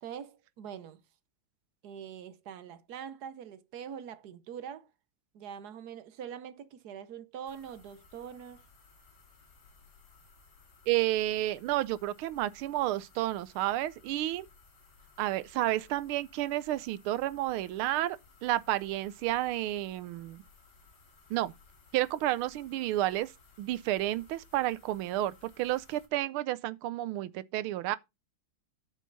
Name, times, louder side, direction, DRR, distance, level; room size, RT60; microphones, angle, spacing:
voice 1, 0.0-1.0 1.8-4.9 5.3-8.7, right 8 dB, 60° right, 1.2 m, -43 dB
sound 1, 7.5-26.1, left 4 dB, 55° left, 2.6 m, -60 dB
voice 2, 10.9-14.5 15.2-18.2 18.4-20.4 21.3-21.5 21.9-23.3 23.6-28.0, right 15 dB, 90° right, 1.5 m, -31 dB
9.0 x 6.5 x 3.9 m
omnidirectional pair, 2.3 m